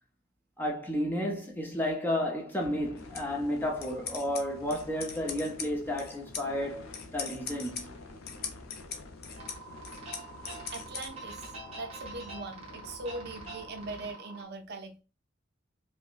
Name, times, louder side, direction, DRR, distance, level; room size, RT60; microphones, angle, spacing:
voice 1, 0.6-6.9 7.1-7.9, left 1 dB, 10° left, 0.7 m, -32 dB
sound 1, 2.6-14.1, left 2 dB, 90° left, 0.7 m, -49 dB
sound 2, 3.0-11.1, left 6 dB, 50° left, 0.6 m, -43 dB
sound 3, 9.4-14.4, right 3 dB, 30° right, 1.1 m, -45 dB
voice 2, 10.7-11.5 11.8-15.0, right 2 dB, 50° right, 0.6 m, -41 dB
4.8 x 2.1 x 2.4 m
head